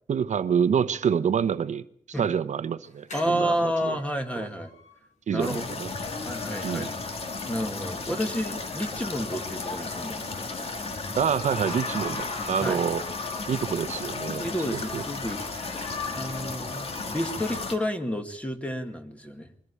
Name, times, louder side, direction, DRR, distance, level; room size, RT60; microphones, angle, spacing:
voice 1, 0.1-1.8 2.2-4.0 4.3-4.5 5.3-5.9 6.6-6.9 11.2-13.0 13.5-14.4 14.7-15.0, right 7 dB, 80° right, 11 dB, 0.9 m, -27 dB
sound 1, 2.8-11.4 11.8-11.9 12.1-12.2 12.5-15.9, left 2 dB, 90° left, 5.7 m, -51 dB
voice 2, 3.1-4.7 5.3-5.6 6.1-6.9 7.4-10.4 12.6-12.8 14.4-15.9 16.1-16.9 17.1-19.5, equal, 10° left, 5 dB, 2.0 m, -30 dB
sound 2, 5.4-17.8, left 3 dB, 55° left, 2.2 m, -34 dB
22.5 x 14.5 x 8.4 m, 0.64 s
wide cardioid pair, 160°, 12 cm